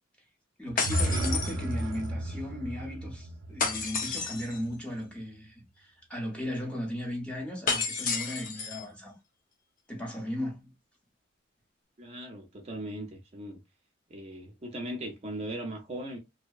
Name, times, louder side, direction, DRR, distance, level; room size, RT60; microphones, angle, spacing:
voice 1, 0.6-9.2 9.9-10.7, equal, 5° left, 0.8 m, -36 dB
sound 1, 0.7-4.7, right 1 dB, 90° right, 0.4 m, -34 dB
sound 2, 0.8-2.1 3.6-4.6 7.7-8.8, left 5 dB, 45° left, 0.5 m, -31 dB
voice 2, 12.0-13.6 14.1-16.2, right 1 dB, 35° right, 0.5 m, -38 dB
2.7 x 2.0 x 2.3 m
head